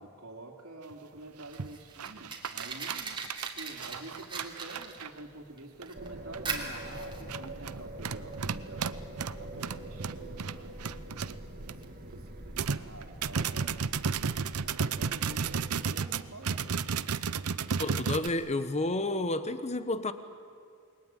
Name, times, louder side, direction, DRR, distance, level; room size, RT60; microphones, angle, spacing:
voice 1, 0.0-3.2 3.5-9.0 9.4-10.7 11.0-13.8 14.5-16.7, right 2 dB, 70° right, 1 dB, 3.2 m, -48 dB
sound 1, 0.9-1.0 1.4-1.7 2.0-5.2 5.8-5.9 6.3-6.6 7.1-11.8 12.1-12.2 12.6-18.3, right 6 dB, 90° right, 0.7 m, -33 dB
Fire, 1.2-18.9, right 4 dB, 25° right, 3.2 m, -44 dB
sound 2, 5.9-15.7, right 1 dB, 40° right, 2.6 m, -44 dB
voice 2, 17.8-20.1, left 2 dB, 30° left, 11 dB, 1.3 m, -30 dB
28.5 x 21.5 x 9.2 m, 2.2 s
head